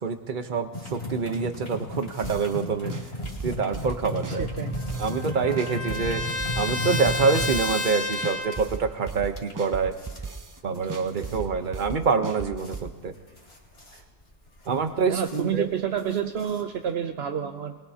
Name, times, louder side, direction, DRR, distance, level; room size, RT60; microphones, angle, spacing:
voice 1, 0.0-2.9 3.4-4.5 5.0-6.2 6.6-10.0 10.6-13.1 14.7-15.7, right 5 dB, 50° right, 7 dB, 1.1 m, -26 dB
sound 1, 0.7-17.0, left 1 dB, 65° left, 2.8 m, -36 dB
sound 2, 2.2-2.6 2.9-5.3 5.6-7.9 8.2-10.6 10.9-12.9, right 4 dB, 30° right, 0.4 m, -37 dB
Trumpet, 4.3-8.7, left 2 dB, 35° left, 0.8 m, -31 dB
voice 2, 4.3-4.8 15.1-17.8, right 9 dB, 70° right, 6 dB, 0.9 m, -29 dB
21.0 x 21.0 x 2.8 m, 1.4 s
omnidirectional pair, 1.1 m